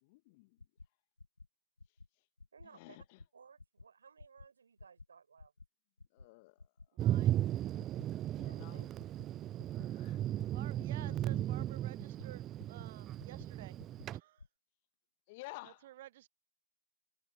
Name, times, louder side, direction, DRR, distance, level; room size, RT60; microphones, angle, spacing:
voice 1, 0.0-0.6 2.7-3.0 6.1-6.6 8.3-8.9 9.8-10.2 11.0-11.5 15.3-15.8, left 23 dB, 35° left, 1.5 m, -52 dB
sound 1, 0.6-0.9 1.2-1.5 1.8-2.1 2.4-2.7 3.0-3.3 3.6-3.8 4.2-4.5 4.8-5.0 5.4-5.7 6.0-6.3 6.6-6.9 7.2-7.5 7.8-8.1 8.4-8.7 9.0-9.3 9.6-9.9 10.2-10.5 10.8-11.0 11.4-11.7 12.0-12.3 12.6-12.9 13.2-13.5 13.8-14.1 14.4-14.5, left 3 dB, 80° left, 2.0 m, -54 dB
voice 2, 2.5-3.0 3.3-5.5 8.5-8.8, right 6 dB, 70° right, 5.1 m, -60 dB
voice 3, 6.9-7.4 10.5-13.8 14.1-14.4 15.6-16.3, right 14 dB, 45° right, 0.9 m, -53 dB
Thunder, 7.0-14.2, right 12 dB, 20° right, 0.3 m, -36 dB
figure-of-eight pair, 120°, 0 cm